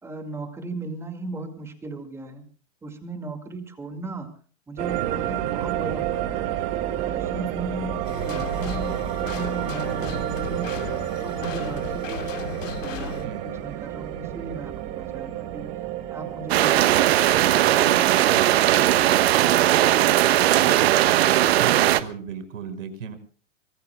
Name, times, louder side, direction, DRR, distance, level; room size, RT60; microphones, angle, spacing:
voice 1, 0.0-2.4 2.8-4.3 4.7-6.5 6.9-10.8 11.2-15.7, right 3 dB, 5° right, 7 dB, 2.2 m, -37 dB
sound 1, 4.8-21.4, right 12 dB, 30° right, 2.0 m, -31 dB
Compacting machine, 8.0-13.3, left 8 dB, 85° left, 2.6 m, -36 dB
voice 2, 13.2-13.5 21.6-23.2, right 6 dB, 80° right, 9 dB, 5.5 m, -35 dB
sound 2, 16.5-22.0, right 13 dB, 55° right, 1.4 m, -18 dB
24.5 x 22.0 x 2.3 m, 0.40 s
supercardioid pair, 165°, 38 cm